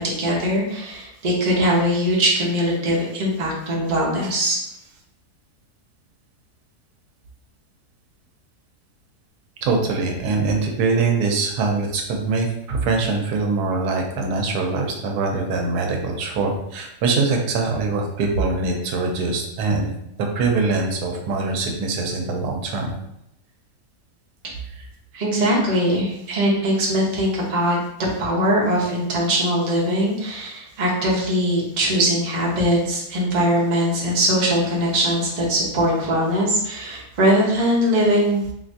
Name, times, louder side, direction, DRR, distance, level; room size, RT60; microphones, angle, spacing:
voice 1, 0.2-4.6 25.1-27.8 28.2-38.4, equal, 40° right, -4 dB, 0.7 m, -21 dB
voice 2, 9.6-19.9 20.2-22.9, right 3 dB, 90° right, 2 dB, 1.1 m, -23 dB
3.3 x 2.8 x 2.6 m, 0.80 s
omnidirectional pair, 1.7 m